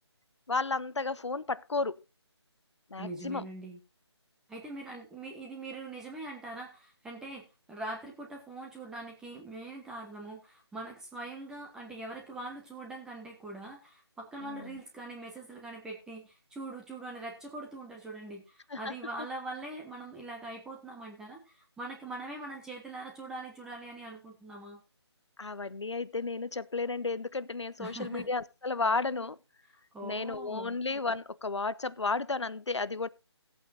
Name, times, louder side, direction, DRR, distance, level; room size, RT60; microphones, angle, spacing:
voice 1, 0.5-2.0 2.9-3.5 14.4-14.8 18.7-18.9 25.4-29.4 30.0-33.1, left 3 dB, 80° left, 0.7 m, -33 dB
voice 2, 3.0-3.8 4.5-24.8 27.8-28.3 29.9-30.8, right 2 dB, 5° right, 1.3 m, -42 dB
18.0 x 8.4 x 2.7 m
figure-of-eight pair, 155°, 15 cm